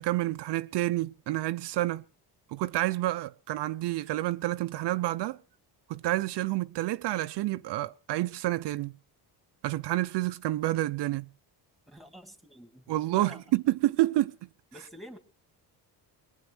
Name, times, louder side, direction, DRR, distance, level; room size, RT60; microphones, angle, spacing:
voice 1, 0.0-2.0 2.5-5.4 5.9-8.9 9.6-11.3 12.9-14.3, right 16 dB, 75° right, 0.7 m, -29 dB
voice 2, 11.9-13.5 14.7-15.2, equal, ahead, 2.0 m, -48 dB
21.5 x 9.2 x 6.1 m
cardioid pair, 150°, 42 cm